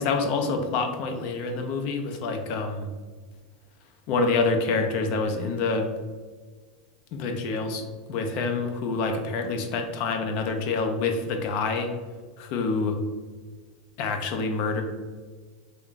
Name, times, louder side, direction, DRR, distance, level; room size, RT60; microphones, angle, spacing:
voice 1, 0.0-2.9 4.1-5.9 7.1-11.9 12.4-13.0 14.0-14.8, left 4 dB, 45° left, 5 dB, 0.5 m, -27 dB
3.5 x 2.2 x 3.8 m, 1.4 s
supercardioid pair, 155°, 3 cm